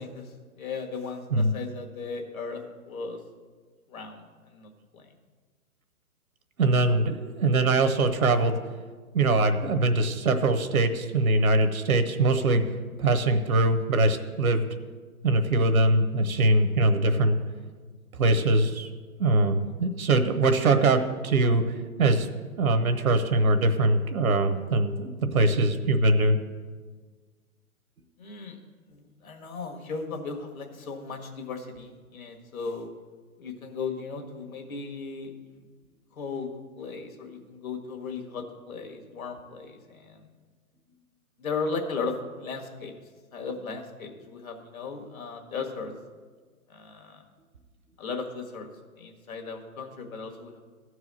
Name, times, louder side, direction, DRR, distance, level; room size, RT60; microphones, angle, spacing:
voice 1, 0.0-3.2 3.9-5.1 28.2-28.6 28.9-32.9 33.4-35.6 36.1-36.5 36.8-40.3 41.4-43.0 43.3-45.9 46.7-47.2 48.0-48.7 49.0-50.6, left 4 dB, 65° left, 2 dB, 1.9 m, -36 dB
voice 2, 6.6-8.6 9.1-12.6 13.0-14.6 15.2-17.4 18.2-18.9 19.2-21.6 22.0-22.3 22.6-26.4, right 2 dB, 70° right, 8 dB, 1.1 m, -22 dB
13.5 x 4.8 x 7.6 m, 1.5 s
figure-of-eight pair, 135°, 44 cm